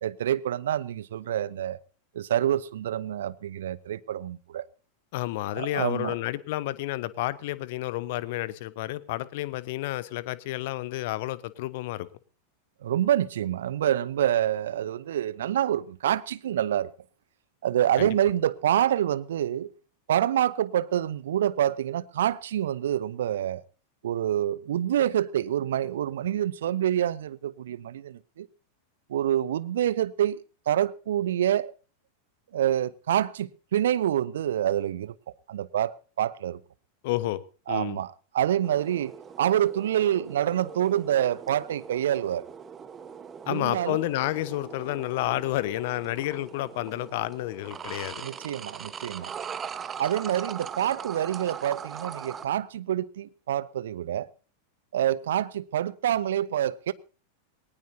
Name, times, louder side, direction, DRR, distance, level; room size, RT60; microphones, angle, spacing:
voice 1, 0.0-1.8 2.1-4.7 5.5-6.2 12.8-16.9 17.6-19.7 20.1-23.6 24.0-28.5 29.1-31.7 32.5-35.1 35.5-36.6 37.7-42.5 43.5-44.0 48.2-49.3 50.0-54.3 54.9-56.9, right 11 dB, 60° right, 0.7 m, -27 dB
voice 2, 5.1-12.1 18.0-18.1 37.0-37.4 37.7-38.0 43.5-48.2, left 16 dB, 50° left, 1.0 m, -30 dB
sound 1, 38.6-52.5, right 7 dB, 20° right, 1.1 m, -41 dB
20.0 x 18.5 x 2.8 m
figure-of-eight pair, 90°, 0 cm